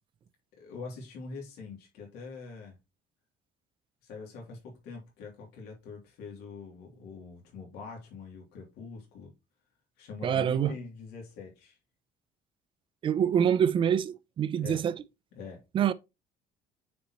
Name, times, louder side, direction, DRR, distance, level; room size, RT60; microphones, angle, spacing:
voice 1, 0.6-2.8 4.0-9.3 10.0-11.8 14.6-14.8 15.3-15.6, left 4 dB, 80° left, 2.9 m, -44 dB
voice 2, 10.2-10.7 13.0-15.0 15.7-15.9, right 8 dB, 30° right, 0.5 m, -25 dB
9.3 x 4.3 x 3.0 m
cardioid pair, 175°, 16 cm